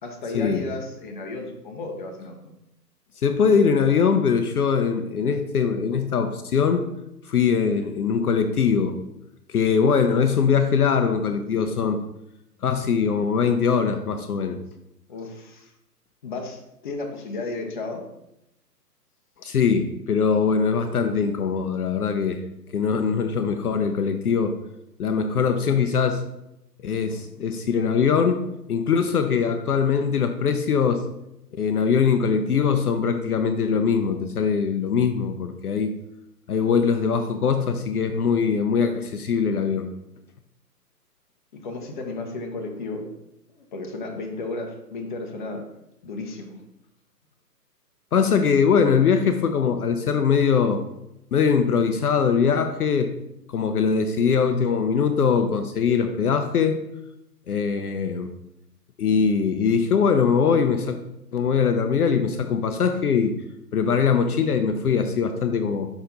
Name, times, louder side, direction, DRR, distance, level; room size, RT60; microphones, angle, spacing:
voice 1, 0.0-2.4 15.1-15.7 16.2-18.0 41.5-43.1 43.5-45.6 46.0-46.6, left 3 dB, 30° left, 2 dB, 0.8 m, -33 dB
voice 2, 3.2-6.9 7.2-9.0 9.5-12.0 12.6-14.6 19.4-22.4 22.7-24.6 25.0-26.2 26.8-28.4 28.7-31.0 31.6-35.9 36.5-39.9 48.1-50.8 51.3-53.1 53.5-56.8 57.5-58.3 59.0-61.0 61.3-63.3 63.7-65.9, left 6 dB, 65° left, 7 dB, 0.6 m, -22 dB
5.8 x 4.3 x 3.8 m, 0.85 s
figure-of-eight pair, 140°, 49 cm